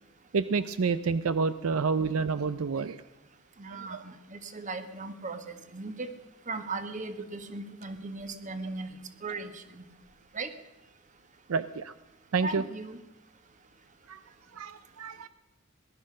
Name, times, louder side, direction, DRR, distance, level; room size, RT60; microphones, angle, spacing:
voice 1, 0.3-3.0 3.7-4.0 11.5-11.9 12.3-12.6 14.1-14.2 14.5-15.3, right 5 dB, 80° right, 14 dB, 0.5 m, -29 dB
voice 2, 3.6-6.1 6.5-9.8 10.3-10.5 12.4-13.0, right 3 dB, 35° right, 9 dB, 1.4 m, -38 dB
18.5 x 12.0 x 6.4 m, 1.0 s
head